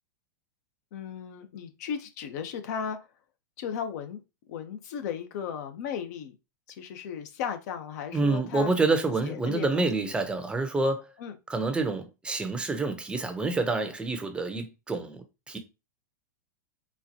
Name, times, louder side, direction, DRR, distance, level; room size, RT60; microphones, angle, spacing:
voice 1, 0.9-3.0 3.6-4.2 4.5-6.3 6.7-8.7 9.2-10.1 11.2-11.4, left 7 dB, 60° left, 0.8 m, -36 dB
voice 2, 8.1-11.1 11.5-15.2 15.5-15.6, right 3 dB, 10° right, 0.7 m, -27 dB
4.3 x 2.4 x 2.8 m
hypercardioid pair, 115°, 10 cm